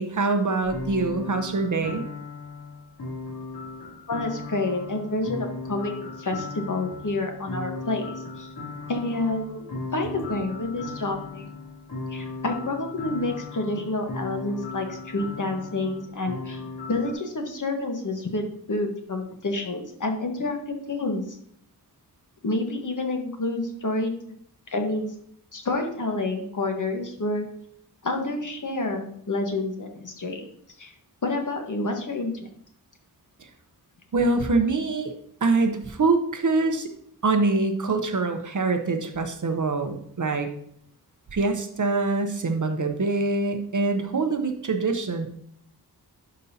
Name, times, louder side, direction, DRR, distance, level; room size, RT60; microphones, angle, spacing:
voice 1, 0.0-2.0 34.1-35.1 35.4-36.9 37.2-40.5 41.3-45.3, right 3 dB, 45° right, 6 dB, 0.8 m, -24 dB
sound 1, 0.6-17.1, left 3 dB, 70° left, 3.2 m, -37 dB
voice 2, 4.1-8.5 8.9-11.5 12.1-16.6 16.9-21.2 22.4-24.1 24.7-25.1 25.5-27.5 28.0-30.4 30.8-30.9 31.2-32.3, left 2 dB, 50° left, 3 dB, 1.3 m, -29 dB
11.0 x 5.2 x 2.8 m, 0.65 s
wide cardioid pair, 120°, 41 cm